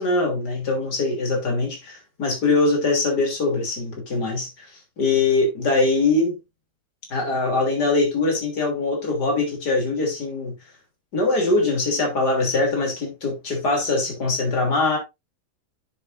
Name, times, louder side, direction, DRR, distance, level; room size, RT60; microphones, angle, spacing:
voice 1, 0.0-4.7 5.0-6.3 7.1-10.6 11.1-15.0, left 3 dB, 85° left, 3.7 m, -22 dB
9.9 x 6.9 x 2.6 m
omnidirectional pair, 1.7 m